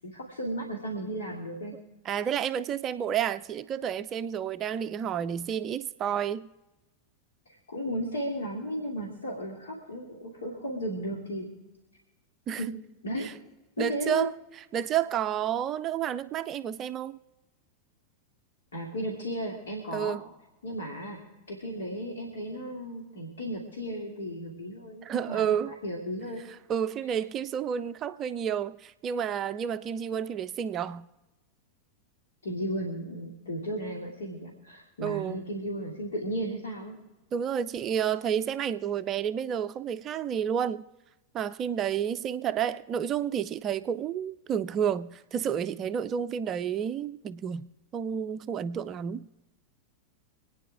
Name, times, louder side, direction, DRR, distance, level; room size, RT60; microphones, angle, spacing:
voice 1, 0.0-1.7 7.7-11.5 12.6-12.7 13.0-13.3 13.8-14.3 18.7-20.2 20.6-21.2 21.5-26.5 32.4-37.0, equal, 65° left, 2.5 m, -35 dB
voice 2, 2.1-6.5 12.5-12.7 13.2-13.3 13.8-14.3 14.7-17.2 19.9-20.2 25.0-25.7 26.7-31.1 35.0-35.4 37.3-40.8 41.3-47.7 47.9-49.3, right 8 dB, 30° right, 0.5 m, -30 dB
26.0 x 9.4 x 3.6 m
figure-of-eight pair, 90°, 0 cm